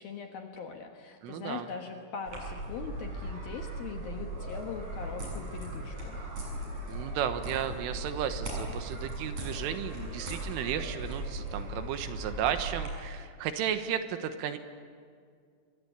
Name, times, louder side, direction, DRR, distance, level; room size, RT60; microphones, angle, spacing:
voice 1, 0.0-6.2, left 6 dB, 65° left, 3 dB, 2.5 m, -41 dB
voice 2, 1.2-1.7 6.9-14.6, right 9 dB, 75° right, 8 dB, 3.7 m, -34 dB
sound 1, 2.3-12.9, right 1 dB, 35° right, 7.9 m, -38 dB
29.5 x 24.0 x 8.3 m, 2.1 s
omnidirectional pair, 5.9 m